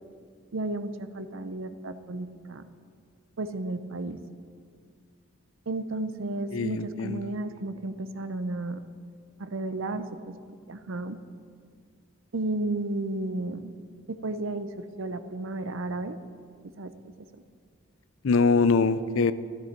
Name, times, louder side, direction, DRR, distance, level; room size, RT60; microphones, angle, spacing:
voice 1, 0.5-2.7 3.4-4.2 5.7-8.8 9.4-10.1 10.7-11.2 12.3-13.7 14.1-16.2 16.8-16.9, right 2 dB, 70° right, 11 dB, 0.7 m, -33 dB
voice 2, 6.5-7.2 18.2-19.3, left 4 dB, 70° left, 14 dB, 0.5 m, -23 dB
13.5 x 12.0 x 4.5 m, 2.1 s
head